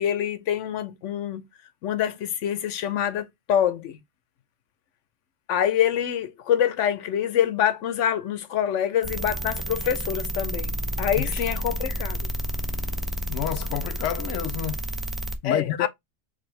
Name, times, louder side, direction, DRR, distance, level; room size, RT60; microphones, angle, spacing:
voice 1, 0.0-1.5 1.8-4.0 5.5-12.3 15.4-15.9, left 9 dB, 90° left, 1.0 m, -26 dB
sound 1, 9.0-15.4, right 1 dB, ahead, 0.3 m, -30 dB
voice 2, 13.3-14.8 15.4-15.9, left 11 dB, 70° left, 0.8 m, -29 dB
4.4 x 3.3 x 3.1 m
omnidirectional pair, 1.2 m